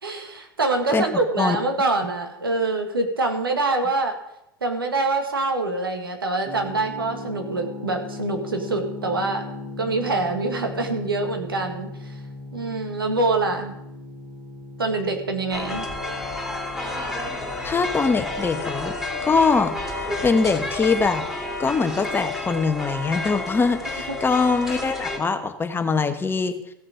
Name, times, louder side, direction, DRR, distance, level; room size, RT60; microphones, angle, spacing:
voice 1, 0.0-4.1 4.6-9.4 9.8-11.9 12.5-13.7 14.8-15.9, right 3 dB, 90° right, 4 dB, 1.6 m, -25 dB
voice 2, 0.9-1.6 17.6-19.0 19.2-19.7 20.2-21.3 21.6-26.6, left 4 dB, 20° left, 7 dB, 1.2 m, -22 dB
sound 1, 6.4-21.2, left 2 dB, 30° right, 2.5 m, -39 dB
sound 2, 15.5-25.2, left 2 dB, 5° right, 2.9 m, -30 dB
16.0 x 6.5 x 5.1 m, 0.81 s
hypercardioid pair, 85°, 12 cm